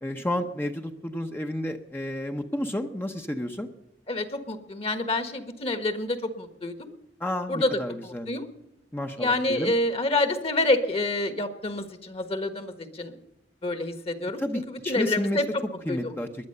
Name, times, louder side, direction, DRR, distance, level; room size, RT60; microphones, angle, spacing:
voice 1, 0.0-3.7 7.2-8.3 8.9-9.7 14.4-15.4 15.9-16.3, left 1 dB, 10° left, 4 dB, 0.8 m, -31 dB
voice 2, 4.1-6.9 7.5-7.7 8.0-8.4 9.2-13.2 13.6-15.5 15.9-16.1, left 2 dB, 35° left, 9 dB, 1.4 m, -28 dB
20.5 x 10.5 x 6.7 m, 0.88 s
head